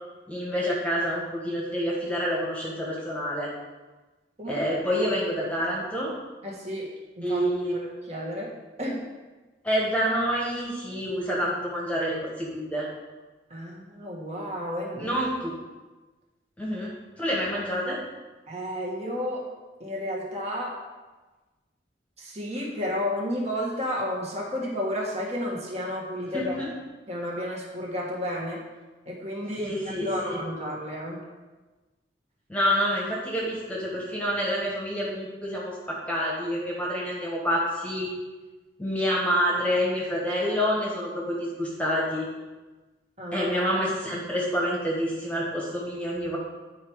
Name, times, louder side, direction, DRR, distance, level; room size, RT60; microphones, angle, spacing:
voice 1, 0.3-3.5 4.5-6.1 7.2-7.8 9.6-12.9 15.0-15.5 16.6-16.9 17.2-18.0 26.3-26.7 29.5-30.4 32.5-38.1 38.8-42.3 43.3-46.4, equal, 10° left, -4 dB, 1.4 m, -27 dB
voice 2, 6.4-6.9 7.2-7.4 7.7-8.5 8.8-9.0 13.5-15.2 18.5-19.5 19.8-20.8 22.2-26.6 27.1-28.6 29.1-31.2 43.2-43.5, left 1 dB, 35° right, -3 dB, 1.7 m, -32 dB
9.8 x 4.6 x 4.7 m, 1.2 s
head